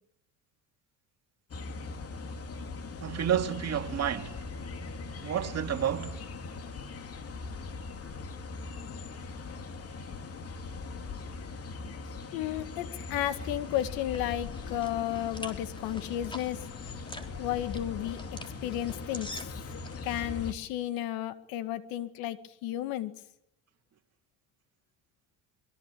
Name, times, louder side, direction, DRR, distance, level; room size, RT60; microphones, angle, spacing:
sound 1, 1.5-20.5, left 4 dB, 40° left, 3.0 m, -40 dB
voice 1, 3.0-4.4 5.2-6.2, right 9 dB, 45° right, 2.5 m, -30 dB
voice 2, 12.3-16.6 17.4-18.2 18.6-19.3 20.0-23.1, left 12 dB, 75° left, 2.1 m, -33 dB
sound 2, 13.4-20.2, left 1 dB, 15° left, 3.9 m, -47 dB
25.0 x 23.0 x 8.6 m
supercardioid pair, 80°, 35 cm